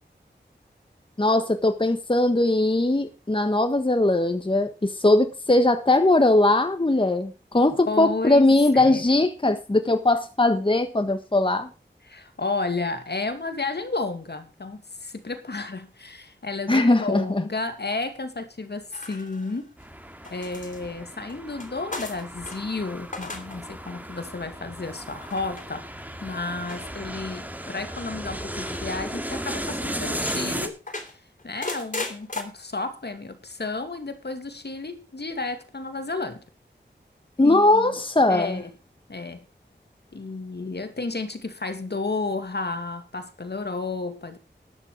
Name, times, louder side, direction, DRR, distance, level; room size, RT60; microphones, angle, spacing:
voice 1, 1.2-11.7 16.7-17.4 37.4-38.6, left 2 dB, 25° left, 1.3 m, -20 dB
voice 2, 7.9-9.0 12.0-19.7 20.3-25.9 26.2-30.8 31.1-36.4 37.4-38.0 38.3-38.7 39.1-39.5 40.1-44.4, left 3 dB, 60° left, 2.3 m, -32 dB
sound 1, 18.9-19.8 20.2-22.6 23.0-23.6 23.9-24.3 25.2-25.6 26.7-27.4 28.6-28.9 29.3-29.4 29.8-30.4 30.9-32.4, left 2 dB, 45° left, 3.2 m, -37 dB
sound 2, 19.8-30.7, equal, 10° right, 2.2 m, -35 dB
12.5 x 9.8 x 4.8 m
wide cardioid pair, 60°, 19 cm